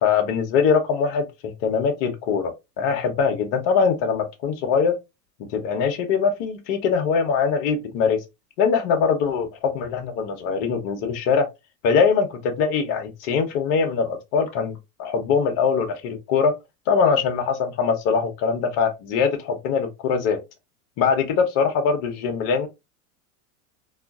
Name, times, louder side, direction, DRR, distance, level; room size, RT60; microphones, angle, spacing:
voice 1, 0.0-5.0 5.5-8.2 8.6-11.5 11.8-16.5 16.9-20.4 21.0-22.7, left 6 dB, 55° left, 1.1 m, -22 dB
3.6 x 2.4 x 2.4 m
hypercardioid pair, 100°, 48 cm